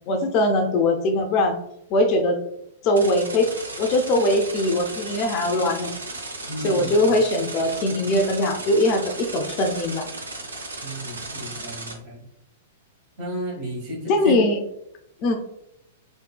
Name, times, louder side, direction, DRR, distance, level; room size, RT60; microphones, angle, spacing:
voice 1, 0.1-1.5 1.9-2.4 2.8-3.5 3.8-5.9 6.6-10.1 14.1-14.6 15.2-15.4, left 1 dB, 40° left, 4 dB, 0.5 m, -21 dB
sound 1, 3.0-11.9, right 2 dB, 75° right, 0.6 m, -35 dB
voice 2, 6.5-7.2 10.8-12.2 13.2-14.5, equal, 45° right, -1 dB, 1.3 m, -32 dB
3.6 x 2.6 x 2.2 m, 0.79 s
figure-of-eight pair, 105°, 0 cm